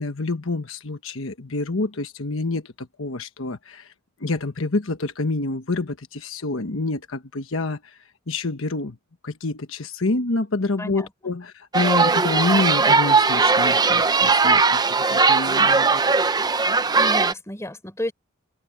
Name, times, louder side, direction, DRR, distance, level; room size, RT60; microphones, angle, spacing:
voice 1, 0.0-3.9 4.2-8.0 8.3-9.0 9.2-16.0, left 2 dB, 70° left, 1.2 m, -27 dB
voice 2, 10.8-11.1 16.8-18.1, left 1 dB, 15° left, 3.7 m, -32 dB
sound 1, 11.7-17.3, right 4 dB, 20° right, 0.6 m, -19 dB
head